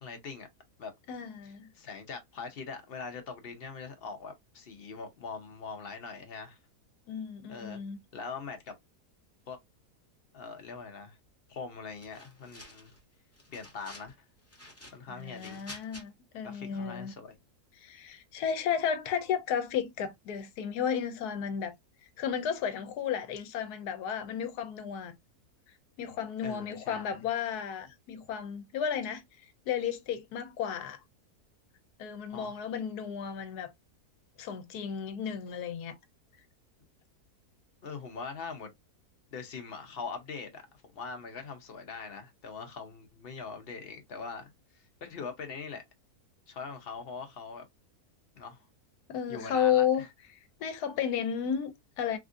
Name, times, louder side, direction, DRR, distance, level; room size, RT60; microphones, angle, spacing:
voice 1, 0.0-0.5 0.8-0.9 1.4-6.6 7.5-7.8 8.1-8.7 9.5-9.6 10.3-11.2 11.5-12.9 13.5-14.3 14.9-15.6 16.4-17.4 26.4-27.2 32.3-32.6 37.8-38.7 39.3-40.6 40.9-45.8 46.5-47.7 48.3-48.6 49.3-50.1, left 5 dB, 55° left, 0.7 m, -42 dB
voice 2, 1.1-1.7 7.1-8.0 15.1-17.1 17.8-21.7 22.0-25.1 26.0-31.0 32.0-33.7 34.4-36.0 49.1-50.0 50.6-52.2, left 8 dB, 80° left, 1.2 m, -33 dB
sound 1, 12.0-13.0 13.3-14.1 14.5-16.0, left 1 dB, 15° left, 0.7 m, -50 dB
3.5 x 2.4 x 2.5 m
omnidirectional pair, 1.7 m